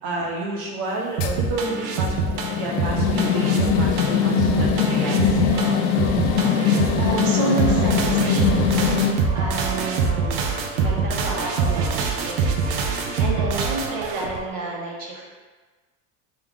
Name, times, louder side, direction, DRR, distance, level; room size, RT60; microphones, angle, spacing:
voice 1, 0.0-2.2 2.6-5.7, right 2 dB, 70° right, -2 dB, 1.2 m, -30 dB
sound 1, 1.2-9.1, left 7 dB, 75° left, 0.6 m, -22 dB
sound 2, 1.2-14.4, right 5 dB, 85° right, 0.7 m, -25 dB
sound 3, 5.5-14.5, right 3 dB, 10° right, 0.6 m, -37 dB
voice 2, 6.9-8.8 9.3-12.5 13.2-15.3, right 2 dB, 45° right, -3 dB, 1.2 m, -29 dB
3.7 x 3.0 x 3.5 m, 1.4 s
supercardioid pair, 100°, 47 cm